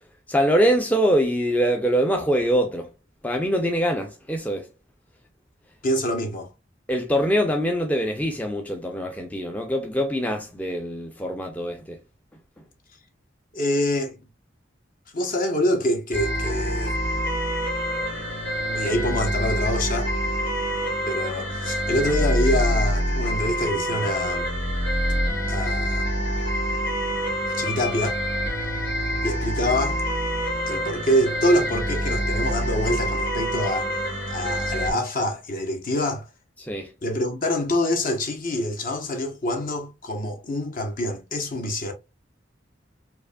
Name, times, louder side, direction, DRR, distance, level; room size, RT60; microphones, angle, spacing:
voice 1, 0.3-2.9 3.2-4.7 6.9-12.0 36.6-36.9, equal, 10° left, 0.4 m, -23 dB
voice 2, 5.8-6.5 13.5-14.2 15.1-16.9 18.7-20.1 21.1-24.5 25.5-26.1 27.5-28.2 29.2-30.0 30.7-33.9 34.3-36.3 37.0-41.9, left 1 dB, 50° left, 1.0 m, -25 dB
sound 1, 16.1-34.9, equal, 90° left, 1.8 m, -26 dB
4.7 x 2.6 x 2.2 m
head